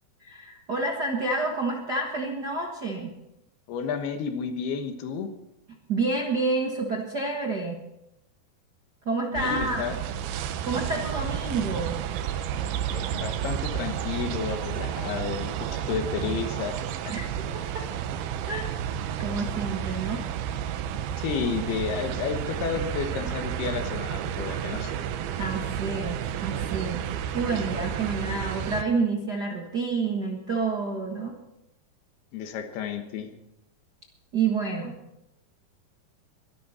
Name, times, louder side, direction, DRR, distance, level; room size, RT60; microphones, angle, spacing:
voice 1, 0.2-3.1 5.9-7.8 9.0-9.9 10.6-12.0 17.1-17.2 18.5-18.7 19.2-20.2 25.4-27.1 27.3-31.3 34.3-35.0, right 3 dB, 55° right, -1 dB, 1.1 m, -29 dB
voice 2, 3.7-5.3 9.3-10.0 12.9-16.8 17.1-17.2 21.2-24.9 32.3-33.3, left 6 dB, 85° left, 7 dB, 3.4 m, -31 dB
sound 1, 9.4-28.8, right 9 dB, 80° right, 2.8 m, -31 dB
22.5 x 13.0 x 4.3 m, 0.88 s
omnidirectional pair, 4.4 m